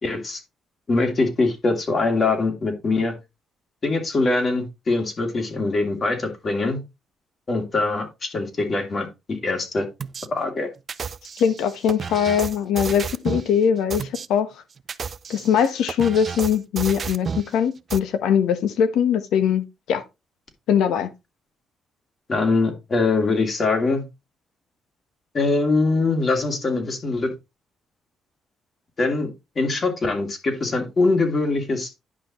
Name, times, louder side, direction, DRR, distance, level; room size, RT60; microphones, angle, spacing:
voice 1, 0.0-0.4 0.9-3.1 3.8-6.8 7.5-9.8 10.3-10.7 22.3-24.0 25.3-27.3 29.0-29.3 29.5-31.9, left 3 dB, 40° left, 2.9 m, -23 dB
sound 1, 10.0-10.3 10.9-13.5 13.9-14.3 14.8-17.5 17.9-18.0, right 6 dB, 45° right, 0.5 m, -31 dB
voice 2, 11.4-14.5 15.3-20.0 20.7-21.1, left 8 dB, 85° left, 1.2 m, -21 dB
10.0 x 5.7 x 3.1 m
cardioid pair, 90°, 0 cm